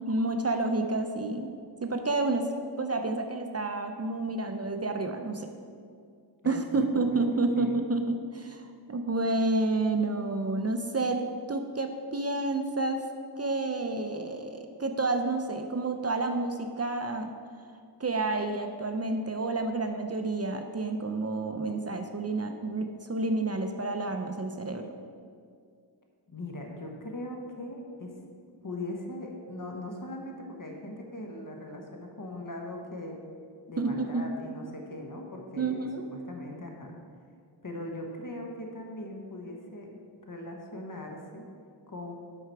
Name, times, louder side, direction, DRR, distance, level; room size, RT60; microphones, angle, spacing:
voice 1, 0.1-1.5 1.8-5.5 6.4-11.2 11.5-13.0 13.4-17.3 18.0-24.8 33.8-34.3 35.6-36.0, right 2 dB, 35° right, 5 dB, 0.6 m, -29 dB
voice 2, 6.4-7.2 7.6-7.8 26.3-28.1 28.6-33.2 33.7-36.9 37.6-39.9 40.2-41.5 41.9-42.1, left 1 dB, 50° left, 1 dB, 1.2 m, -40 dB
8.1 x 5.8 x 4.6 m, 2.2 s
wide cardioid pair, 60°, 42 cm